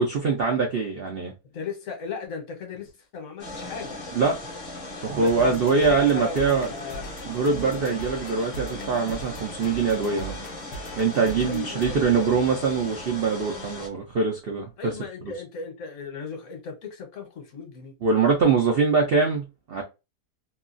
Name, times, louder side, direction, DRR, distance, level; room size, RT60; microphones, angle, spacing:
voice 1, 0.0-1.3 4.1-4.4 5.0-6.7 7.3-10.4 11.0-14.9 18.0-19.8, right 4 dB, 65° right, 0.6 m, -23 dB
voice 2, 1.4-4.0 5.1-7.1 11.4-12.3 14.8-17.9, left 5 dB, 55° left, 1.2 m, -37 dB
sound 1, 3.4-13.9, left 2 dB, 40° left, 0.7 m, -38 dB
sound 2, 4.5-13.1, right 2 dB, 80° left, 0.5 m, -40 dB
2.9 x 2.3 x 2.4 m
omnidirectional pair, 1.7 m